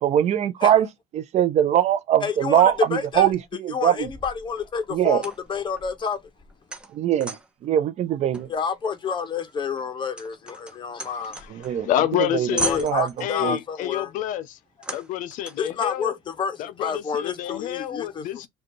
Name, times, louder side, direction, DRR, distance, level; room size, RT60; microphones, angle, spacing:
voice 1, 0.0-0.9 1.1-2.7 3.2-4.1 4.9-5.2 6.9-7.4 7.6-8.5 11.5-11.9 12.3-12.5 12.8-13.1 13.4-13.6, right 10 dB, 50° right, 0.5 m, -21 dB
voice 2, 2.2-3.3 3.7-6.2 8.5-11.4 12.6-14.1 15.6-18.2, left 6 dB, 35° left, 0.9 m, -29 dB
sound 1, 2.6-3.5 4.0-7.7 8.3-11.9 12.2-12.3 12.6-13.4 14.8-15.7, right 2 dB, 5° right, 0.8 m, -36 dB
voice 3, 11.3-12.9 13.2-14.6 14.9-16.1 16.6-18.5, left 12 dB, 65° left, 0.5 m, -28 dB
4.9 x 2.4 x 3.0 m
supercardioid pair, 100°, 14 cm